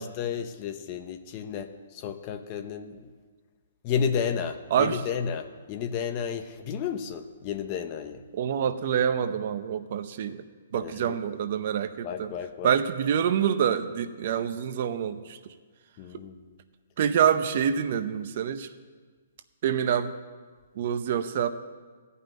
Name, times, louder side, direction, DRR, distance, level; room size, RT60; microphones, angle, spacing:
voice 1, 0.0-3.0 3.8-8.2 10.7-11.2 12.0-12.7 16.0-16.4, left 7 dB, 30° left, 9 dB, 0.7 m, -32 dB
voice 2, 8.3-10.4 10.7-12.3 12.6-15.4 17.0-18.7 19.6-20.1 20.8-21.5, right 8 dB, 45° right, 10 dB, 0.7 m, -26 dB
14.5 x 5.6 x 9.1 m, 1.5 s
hypercardioid pair, 165°, 0 cm